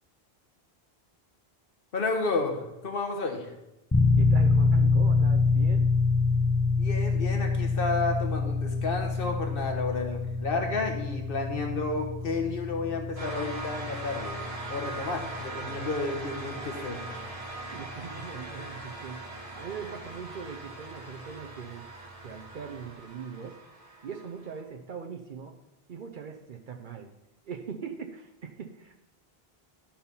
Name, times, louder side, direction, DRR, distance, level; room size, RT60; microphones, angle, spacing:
voice 1, 1.9-3.5 6.6-14.4 14.7-17.0, left 3 dB, 65° left, 3 dB, 1.4 m, -31 dB
sound 1, 3.9-20.7, left 3 dB, 15° left, 0.5 m, -27 dB
voice 2, 4.2-5.9 17.7-21.9 22.2-23.6 24.0-25.6 25.9-27.1 27.5-29.0, right 6 dB, 55° right, 3 dB, 0.8 m, -41 dB
sound 2, 13.2-24.6, right 2 dB, 35° right, 1.5 m, -41 dB
12.0 x 4.3 x 5.4 m, 0.96 s
omnidirectional pair, 1.0 m